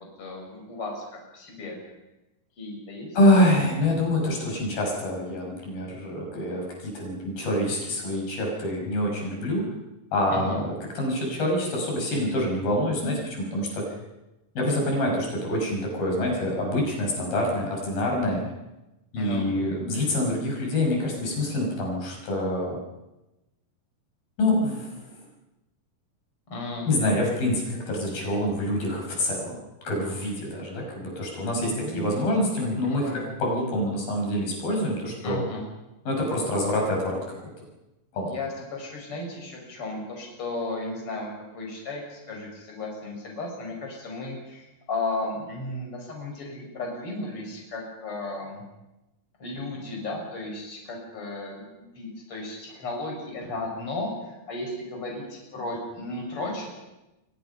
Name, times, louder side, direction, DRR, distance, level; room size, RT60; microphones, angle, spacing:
voice 1, 0.2-1.0 1.3-1.8 2.6-3.1 3.4-3.5 10.3-10.6 19.2-19.5 26.5-26.9 31.6-32.3 32.6-33.3 35.2-35.6 38.2-48.6 49.4-56.7, left 2 dB, 40° left, 1 dB, 6.4 m, -34 dB
voice 2, 3.1-9.7 10.1-13.8 14.6-18.4 19.1-22.8 24.4-25.0 26.9-29.6 29.8-33.1 33.4-35.4 36.1-37.5 38.1-38.4, left 1 dB, 80° left, 0 dB, 7.8 m, -26 dB
29.0 x 24.0 x 5.7 m, 0.99 s
omnidirectional pair, 4.1 m